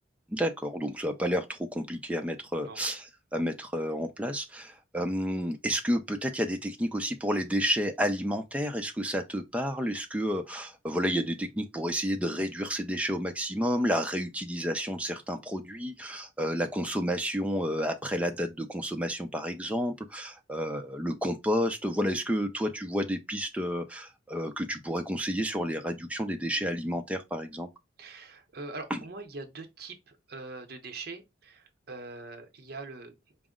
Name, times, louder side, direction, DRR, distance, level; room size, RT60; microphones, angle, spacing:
voice 1, 0.3-27.7 28.9-29.0, equal, 5° right, 0.5 m, -30 dB
voice 2, 28.0-33.2, right 3 dB, 50° right, 0.7 m, -43 dB
5.0 x 2.0 x 3.6 m
head